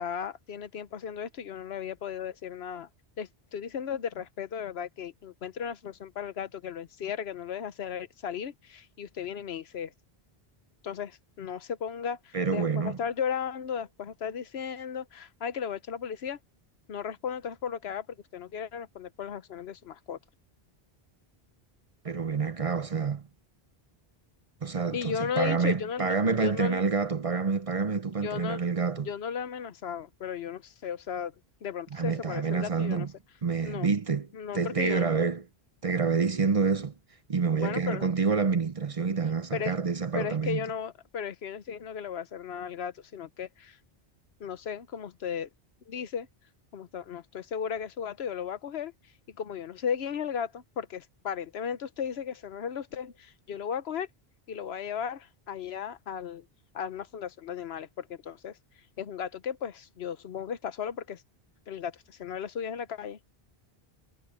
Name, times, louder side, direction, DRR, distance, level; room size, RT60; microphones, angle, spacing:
voice 1, 0.0-2.9 3.2-9.9 10.8-16.4 16.9-18.1 18.3-20.2 24.9-26.8 28.2-28.6 29.0-31.3 31.6-33.1 33.6-33.9 34.3-35.1 37.5-38.1 39.5-39.7 40.1-43.8 44.4-45.5 45.9-46.3 46.7-48.9 49.4-54.1 54.5-56.5 56.7-58.6 59.0-61.2 61.7-63.2, left 7 dB, 90° left, 1.1 m, -35 dB
voice 2, 12.3-13.0 22.0-23.3 24.6-29.1 31.9-33.1 33.4-34.3 34.5-35.4 35.8-36.9 37.3-40.6, right 5 dB, 40° right, 0.7 m, -28 dB
omnidirectional pair, 1.0 m